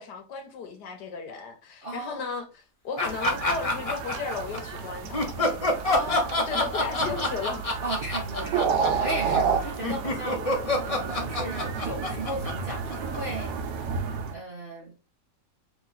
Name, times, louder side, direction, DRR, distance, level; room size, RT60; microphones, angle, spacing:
voice 1, 0.0-5.6 6.4-7.7, left 5 dB, 70° left, 1.3 m, -35 dB
voice 2, 1.8-2.4 5.8-6.4 7.8-10.4 10.8-13.5 14.3-14.9, right 1 dB, 45° right, 0.7 m, -35 dB
sound 1, 3.0-4.6 5.1-13.4, left 2 dB, 45° left, 0.4 m, -27 dB
sound 2, 3.0-14.3, right 6 dB, 75° right, 1.2 m, -31 dB
3.0 x 3.0 x 3.9 m
omnidirectional pair, 2.0 m